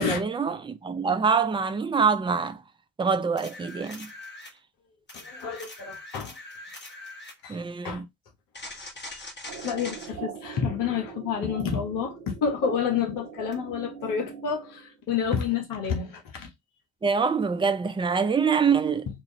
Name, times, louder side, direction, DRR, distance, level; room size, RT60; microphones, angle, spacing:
voice 1, 0.0-2.6 3.0-4.1 7.5-8.1 17.0-19.1, right 5 dB, 15° right, 0.6 m, -25 dB
sound 1, 3.4-4.6 5.1-7.4 8.5-10.1 13.5-13.6, left 2 dB, 30° left, 1.9 m, -42 dB
voice 2, 5.1-6.3 7.4-7.6 7.8-8.0 9.1-9.2 9.6-16.5, left 7 dB, 60° left, 1.5 m, -29 dB
sound 2, 9.5-15.0, right 7 dB, 60° right, 1.1 m, -42 dB
4.3 x 2.7 x 2.9 m
figure-of-eight pair, 50°, 38 cm